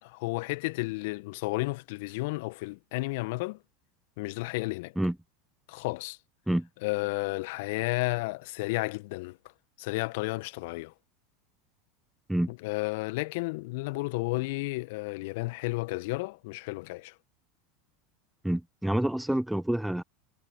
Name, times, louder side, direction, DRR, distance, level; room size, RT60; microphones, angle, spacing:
voice 1, 0.0-3.6 4.2-4.9 5.7-6.2 6.8-9.4 9.8-10.9 12.5-17.1, left 24 dB, 60° left, 1.7 m, -32 dB
voice 2, 18.4-20.0, right 1 dB, 5° right, 0.3 m, -28 dB
figure-of-eight pair, 80°, 0 cm